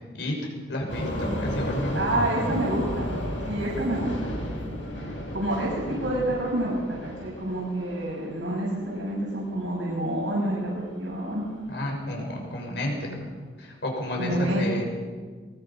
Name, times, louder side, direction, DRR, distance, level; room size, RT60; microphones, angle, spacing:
voice 1, 0.7-2.0 11.7-13.2 13.6-14.8, left 1 dB, 65° left, 0 dB, 5.9 m, -31 dB
sound 1, 0.9-9.5 9.9-10.3 10.7-10.8 11.3-11.4 11.8-11.9, equal, 85° left, 7.4 m, -33 dB
voice 2, 1.9-3.1 3.4-4.3 5.0-5.1 5.3-11.4 14.1-14.8, right 1 dB, 85° right, -5 dB, 6.7 m, -28 dB
22.0 x 21.5 x 5.6 m, 1.5 s
head